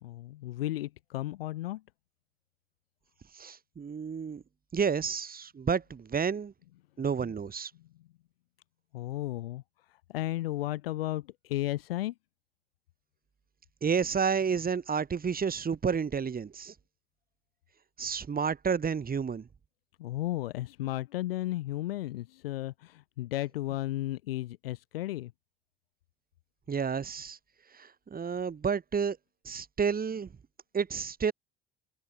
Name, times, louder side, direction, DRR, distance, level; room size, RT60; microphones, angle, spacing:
voice 1, 0.0-1.8 8.9-9.6 10.1-12.1 20.0-25.3, left 15 dB, 75° left, 2.4 m, -34 dB
voice 2, 3.3-4.4 4.7-6.5 7.0-7.7 13.8-16.7 18.0-19.5 26.7-27.4 27.7-29.2 29.5-30.3 30.7-31.3, right 6 dB, 30° right, 5.0 m, -30 dB
figure-of-eight pair, 60°, 30 cm